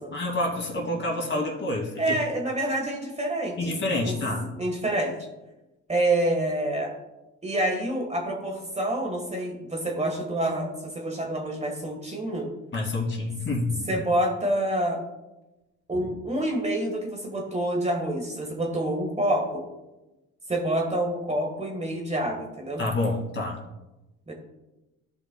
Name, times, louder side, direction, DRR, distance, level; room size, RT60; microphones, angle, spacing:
voice 1, 0.1-2.2 3.6-4.6 12.7-14.0 22.8-23.6, left 2 dB, 40° left, -1 dB, 2.4 m, -28 dB
voice 2, 2.0-3.6 4.0-4.1 4.6-5.1 5.9-6.9 7.4-12.5 13.9-15.0 15.9-19.6 20.5-22.8 24.3-24.4, right 1 dB, 20° right, 1 dB, 1.6 m, -27 dB
15.0 x 5.5 x 2.3 m, 1.0 s
cardioid pair, 90°, 30 cm